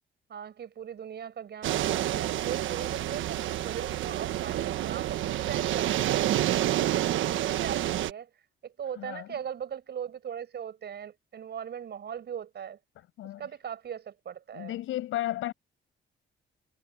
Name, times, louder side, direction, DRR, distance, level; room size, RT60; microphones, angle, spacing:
voice 1, 0.3-6.9 7.3-12.8 13.2-14.8, right 8 dB, 60° right, 6.4 m, -39 dB
sound 1, 1.6-8.1, right 13 dB, 80° right, 1.2 m, -28 dB
voice 2, 9.0-9.3 13.2-13.4 14.5-15.5, left 14 dB, 85° left, 7.1 m, -33 dB
cardioid pair, 90°, 20 cm